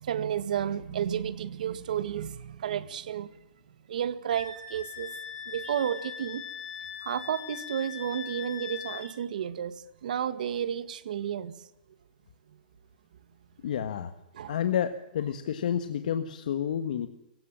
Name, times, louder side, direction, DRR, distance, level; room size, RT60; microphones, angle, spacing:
voice 1, 0.0-3.3 3.9-5.1 5.5-6.4 7.0-11.5 14.3-14.6, right 9 dB, 65° right, 1.7 m, -32 dB
Wind instrument woodwind instrument, 4.3-9.1, left 8 dB, 25° left, 6.6 m, -40 dB
voice 2, 13.6-14.1 14.5-17.1, left 9 dB, 65° left, 1.5 m, -30 dB
25.5 x 16.0 x 7.6 m
hypercardioid pair, 165°, 5 cm